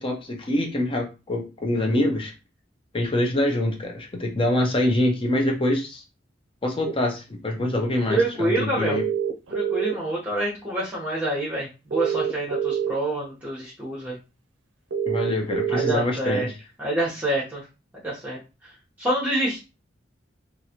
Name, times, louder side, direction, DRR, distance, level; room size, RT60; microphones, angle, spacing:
voice 1, 0.0-2.3 2.9-6.0 6.6-9.0 15.1-16.5, left 1 dB, 30° left, 2 dB, 0.7 m, -25 dB
sound 1, 6.8-6.9 8.9-10.1 11.9-12.9 14.9-15.9, right 8 dB, 80° right, 0.5 m, -26 dB
voice 2, 8.1-9.0 9.5-14.2 15.7-16.5 16.8-17.6 18.0-18.7 19.0-19.6, right 1 dB, 10° right, -6 dB, 0.9 m, -27 dB
3.1 x 2.5 x 2.8 m, 0.29 s
head